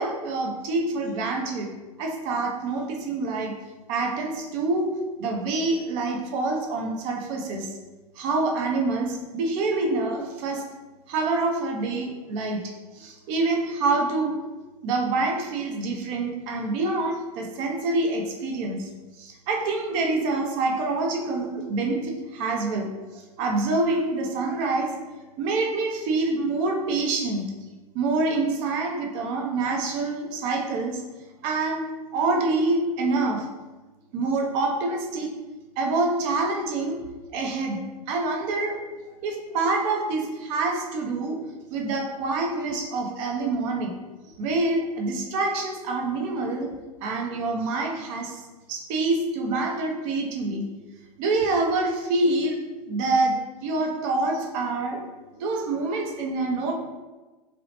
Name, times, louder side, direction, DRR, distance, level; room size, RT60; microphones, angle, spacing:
voice 1, 0.0-1.7 2.0-3.5 3.9-7.8 8.2-10.7 11.1-14.4 14.8-18.9 19.2-25.0 25.4-27.5 27.9-31.0 31.4-33.5 34.1-35.3 35.8-37.0 37.3-38.8 39.2-41.4 41.7-43.9 44.4-46.7 47.0-48.4 48.7-50.6 51.2-52.6 52.9-55.0 55.4-56.7, right 3 dB, 50° right, 2 dB, 0.6 m, -26 dB
2.8 x 2.0 x 2.9 m, 1.2 s
hypercardioid pair, 95°, 20 cm